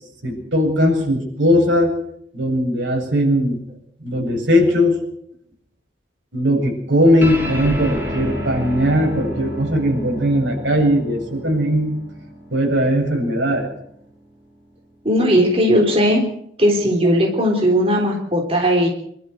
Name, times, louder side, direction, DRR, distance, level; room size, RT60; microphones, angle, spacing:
voice 1, 0.2-1.9 2.3-3.6 4.0-5.0 6.3-11.9 12.5-13.7, equal, 90° right, 2 dB, 7.8 m, -18 dB
sound 1, 7.2-14.0, equal, 10° right, 5.7 m, -31 dB
voice 2, 15.0-16.3 16.6-18.9, equal, 30° right, 1 dB, 3.6 m, -17 dB
25.5 x 13.0 x 8.0 m, 0.71 s
head